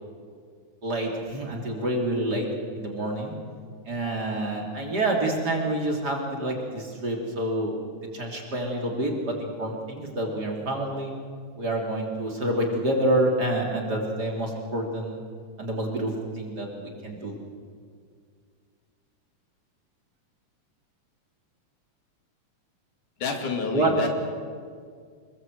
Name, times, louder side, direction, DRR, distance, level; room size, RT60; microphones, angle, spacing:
voice 1, 0.8-2.5 2.8-3.3 3.9-7.7 8.1-11.1 11.6-15.2 15.6-17.3 23.7-23.9, right 1 dB, 30° right, 0 dB, 3.4 m, -27 dB
voice 2, 23.2-24.1, left 4 dB, 85° left, 4 dB, 3.9 m, -28 dB
25.5 x 21.0 x 7.9 m, 2.1 s
omnidirectional pair, 3.4 m